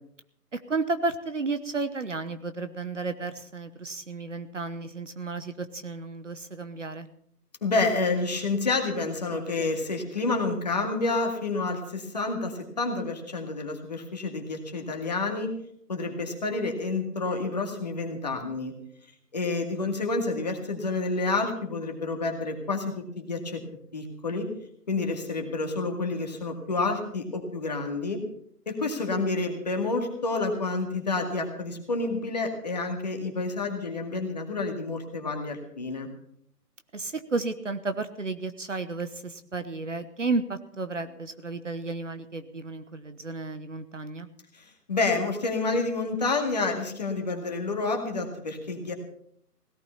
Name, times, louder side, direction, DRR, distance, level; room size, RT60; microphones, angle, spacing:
voice 1, 0.5-7.1 36.9-44.3, right 3 dB, 50° right, 11 dB, 1.1 m, -32 dB
voice 2, 7.6-15.5 15.9-18.7 19.3-23.6 23.9-24.5 24.9-28.2 28.7-36.1 44.5-48.9, left 3 dB, 25° left, 3 dB, 2.0 m, -29 dB
17.5 x 12.0 x 5.7 m, 0.66 s
figure-of-eight pair, 165°, 47 cm